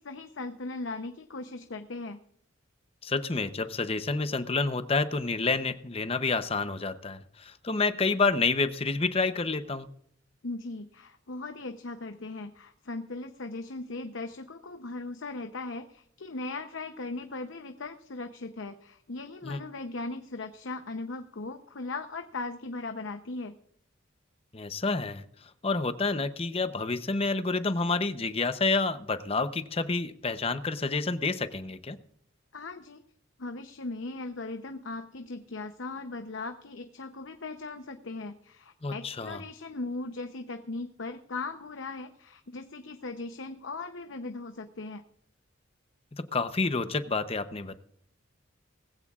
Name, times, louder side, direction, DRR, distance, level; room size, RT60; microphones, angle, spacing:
voice 1, 0.0-2.2 10.4-23.6 32.5-33.0 33.4-45.0, left 3 dB, 75° left, 7 dB, 0.8 m, -38 dB
voice 2, 3.0-9.9 19.4-19.6 24.5-25.2 25.6-32.0 38.8-39.4 46.1-47.8, left 3 dB, 30° left, 11 dB, 0.7 m, -29 dB
19.5 x 15.5 x 2.4 m, 0.69 s
head